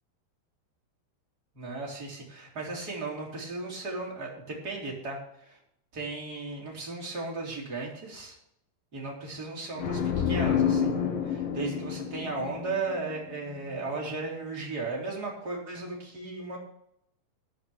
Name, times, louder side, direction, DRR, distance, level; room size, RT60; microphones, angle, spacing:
voice 1, 1.5-5.6 5.9-8.4 8.9-10.9 11.2-16.6, right 3 dB, 20° right, -3 dB, 3.3 m, -36 dB
sound 1, 9.8-13.4, left 7 dB, 65° left, 4.0 m, -29 dB
13.0 x 7.3 x 7.3 m, 0.75 s
omnidirectional pair, 6.0 m